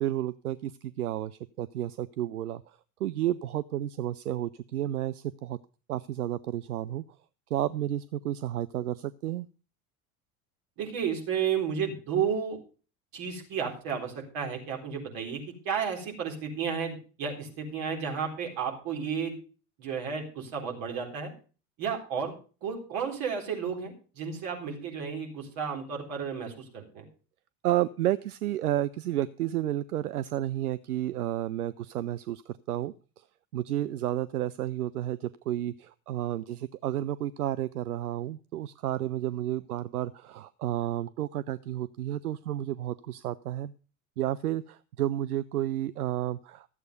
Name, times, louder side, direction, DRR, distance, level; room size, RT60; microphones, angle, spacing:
voice 1, 0.0-2.6 3.0-5.6 5.9-7.0 7.5-9.5 27.6-33.2 33.5-43.7 44.2-46.7, right 13 dB, 80° right, 15 dB, 0.5 m, -31 dB
voice 2, 10.8-12.6 13.1-19.4 19.8-21.3 21.8-22.3 22.6-27.0, right 7 dB, 50° right, 0 dB, 3.9 m, -32 dB
13.5 x 8.0 x 5.2 m, 0.37 s
figure-of-eight pair, 75°, 44 cm